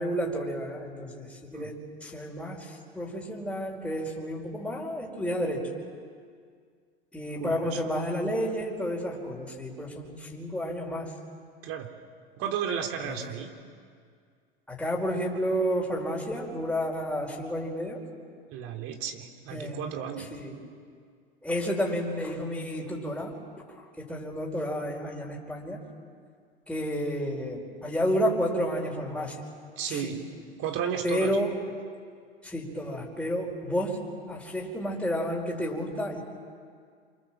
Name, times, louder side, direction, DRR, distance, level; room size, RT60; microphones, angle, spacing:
voice 1, 0.0-5.7 7.1-11.2 13.0-13.3 14.7-18.0 19.5-19.8 20.3-20.6 21.4-23.3 23.7-25.8 26.7-29.4 29.9-30.2 31.0-31.6 32.4-36.2, equal, 5° left, -3 dB, 5.2 m, -31 dB
voice 2, 7.4-7.8 11.6-11.9 12.4-13.5 18.5-20.3 29.8-30.2 30.6-31.4, right 8 dB, 50° right, 3 dB, 3.6 m, -33 dB
28.5 x 27.0 x 7.7 m, 2.1 s
hypercardioid pair, 85°, 29 cm